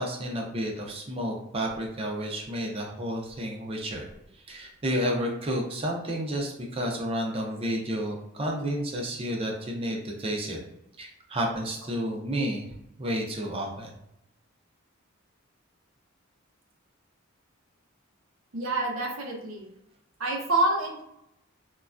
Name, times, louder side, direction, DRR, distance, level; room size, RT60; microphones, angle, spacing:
voice 1, 0.0-4.0 4.5-10.6 11.0-12.6 13.0-13.9, equal, 25° right, 0 dB, 0.5 m, -31 dB
voice 2, 18.5-19.7 20.2-21.0, right 2 dB, 75° right, 1 dB, 0.6 m, -27 dB
3.1 x 2.2 x 2.4 m, 0.81 s
head